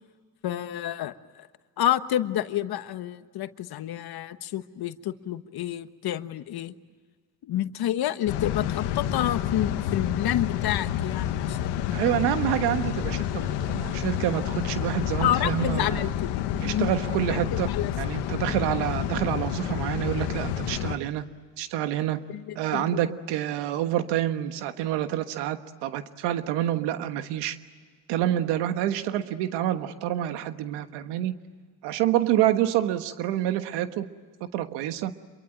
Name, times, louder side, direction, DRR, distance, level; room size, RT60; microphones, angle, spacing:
voice 1, 0.4-1.5 1.8-6.7 7.4-12.1 15.2-16.9 17.3-17.9 22.3-23.1, left 12 dB, 60° left, 1.3 m, -29 dB
sound 1, 8.3-21.0, left 10 dB, 85° left, 1.5 m, -29 dB
voice 2, 11.9-16.1 16.6-17.7 18.0-21.2 21.6-27.6 28.1-31.3 31.8-34.1 34.5-35.1, right 12 dB, 85° right, 1.4 m, -27 dB
27.5 x 23.0 x 9.3 m
supercardioid pair, 80°, 41 cm